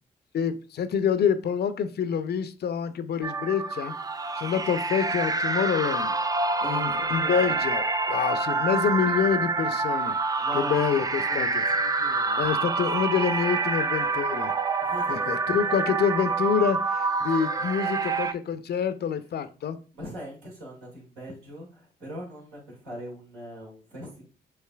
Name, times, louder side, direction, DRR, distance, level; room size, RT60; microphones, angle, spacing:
voice 1, 0.3-3.9 4.4-6.2 6.6-10.2 10.5-11.6 12.4-14.5 15.1-19.8, left 7 dB, 50° left, 12 dB, 0.5 m, -27 dB
sound 1, 3.2-18.3, right 3 dB, 20° right, 0.4 m, -27 dB
voice 2, 6.6-7.6 10.4-12.5 14.8-15.3 19.9-24.3, equal, 80° right, -4 dB, 1.9 m, -41 dB
5.6 x 3.1 x 2.2 m, 0.34 s
hypercardioid pair, 50°, 21 cm